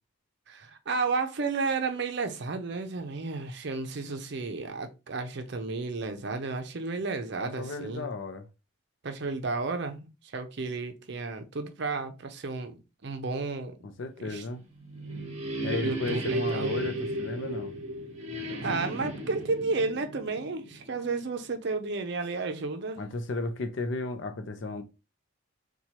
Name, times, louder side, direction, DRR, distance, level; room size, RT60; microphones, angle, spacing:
voice 1, 0.5-8.1 9.0-12.8 13.0-13.7 14.2-14.4 15.8-16.7 18.6-23.0, right 3 dB, 55° right, 0.5 m, -32 dB
voice 2, 7.4-8.5 13.8-14.6 15.6-17.7 23.0-24.8, left 2 dB, 60° left, 0.5 m, -34 dB
sound 1, 14.5-21.2, right 1 dB, 30° right, 0.9 m, -35 dB
4.4 x 2.2 x 2.8 m
head